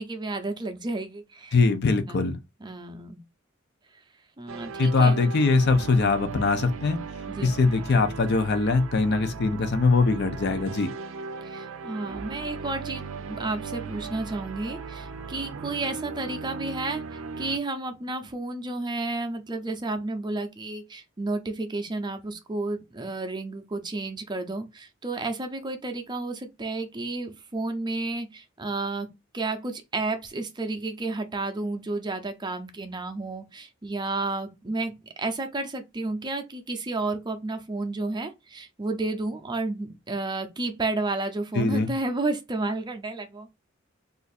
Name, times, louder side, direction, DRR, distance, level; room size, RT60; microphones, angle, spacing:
voice 1, 0.0-1.6 2.1-2.3 2.6-3.2 4.4-5.2 7.3-7.6 11.4-29.1 29.3-43.5, right 2 dB, 20° right, 0.5 m, -31 dB
voice 2, 1.5-2.4 4.8-7.0 7.4-10.9 41.6-41.9, left 3 dB, 55° left, 0.5 m, -22 dB
sound 1, 4.5-17.6, right 5 dB, 85° right, 0.5 m, -37 dB
2.6 x 2.4 x 4.1 m
head